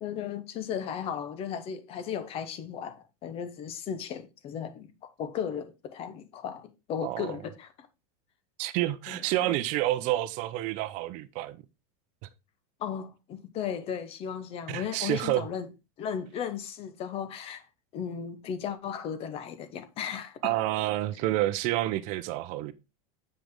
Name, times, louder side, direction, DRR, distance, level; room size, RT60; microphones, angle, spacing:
voice 1, 0.0-4.9 5.2-7.9 9.1-9.5 12.8-15.7 16.0-17.7 17.9-20.5, left 8 dB, 35° left, 1.0 m, -36 dB
voice 2, 8.6-11.6 14.7-15.4 20.4-22.7, right 15 dB, 45° right, 0.7 m, -29 dB
7.6 x 5.1 x 3.7 m
supercardioid pair, 155°, 18 cm